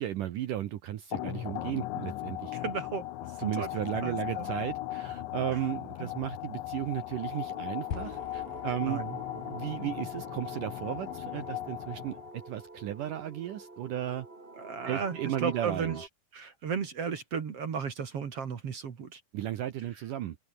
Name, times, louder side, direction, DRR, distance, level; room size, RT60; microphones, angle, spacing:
voice 1, 0.0-2.6 3.4-9.0 9.3-14.3 14.9-16.0 19.3-20.4, right 12 dB, 80° right, 1.9 m, -35 dB
sound 1, 1.1-12.5, left 15 dB, 80° left, 3.5 m, -38 dB
voice 2, 2.5-3.7 4.0-4.5 5.5-5.6 6.0-6.1 8.8-9.2 14.6-16.1 16.3-19.2, right 6 dB, 45° right, 2.1 m, -35 dB
sound 2, 7.1-16.1, right 2 dB, 15° right, 2.1 m, -47 dB
sound 3, 7.9-12.3, left 9 dB, 55° left, 3.9 m, -46 dB
open air
omnidirectional pair, 5.4 m